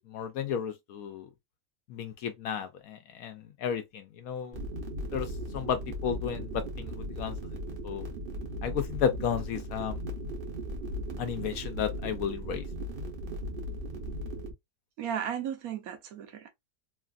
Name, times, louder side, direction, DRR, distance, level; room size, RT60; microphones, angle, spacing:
voice 1, 0.1-1.3 1.9-4.6 5.1-8.0 8.6-10.0 11.2-12.6, left 8 dB, 75° left, 1.1 m, -33 dB
sound 1, 4.5-14.5, equal, 45° right, 0.9 m, -37 dB
voice 2, 15.0-16.5, right 8 dB, 75° right, 1.2 m, -35 dB
3.2 x 2.4 x 2.4 m
omnidirectional pair, 1.6 m